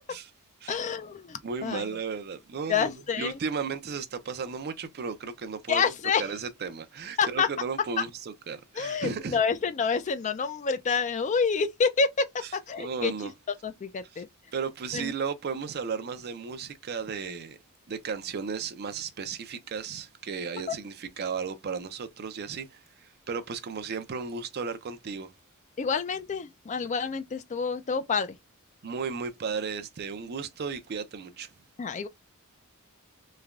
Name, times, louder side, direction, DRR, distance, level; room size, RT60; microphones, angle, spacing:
voice 1, 0.7-1.9 2.7-3.4 5.7-6.3 7.2-7.5 8.8-12.3 12.5-13.3 13.6-14.3 14.9-15.1 20.7-20.8 25.8-28.4 31.8-32.1, left 5 dB, 35° left, 0.4 m, -28 dB
voice 2, 1.4-5.9 6.2-9.4 12.8-13.3 14.1-14.2 14.5-17.6 17.9-25.3 28.8-31.5, right 5 dB, 45° right, 0.5 m, -35 dB
3.2 x 2.2 x 2.4 m
head